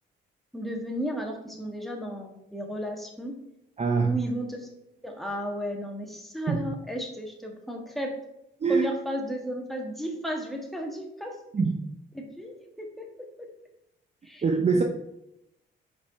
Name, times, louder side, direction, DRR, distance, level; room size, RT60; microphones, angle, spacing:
voice 1, 0.5-3.3 4.1-4.7 5.0-8.1 8.7-11.4 12.1-13.1 13.4-13.5 14.2-14.4 14.7-14.8, equal, ahead, 1 dB, 1.6 m, -34 dB
voice 2, 3.8-4.1 6.5-6.6 8.6-8.9 11.5-11.8 14.4-14.8, right 4 dB, 35° right, 3 dB, 0.8 m, -23 dB
5.3 x 5.0 x 4.9 m, 0.83 s
cardioid pair, 90°, 20 cm